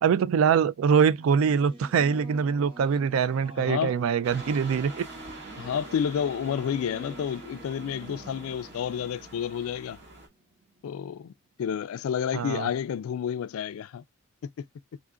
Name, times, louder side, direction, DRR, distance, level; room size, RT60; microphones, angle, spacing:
voice 1, 0.0-5.0 12.3-12.7, right 7 dB, 75° right, 0.3 m, -23 dB
Singing / Musical instrument, 1.0-11.1, right 2 dB, 25° right, 0.9 m, -48 dB
voice 2, 3.6-4.0 5.5-10.0 10.8-11.3 11.6-14.0 14.6-14.7, left 8 dB, 85° left, 0.3 m, -30 dB
sound 1, 4.2-10.3, right 2 dB, 55° right, 1.8 m, -45 dB
4.8 x 2.4 x 3.6 m
head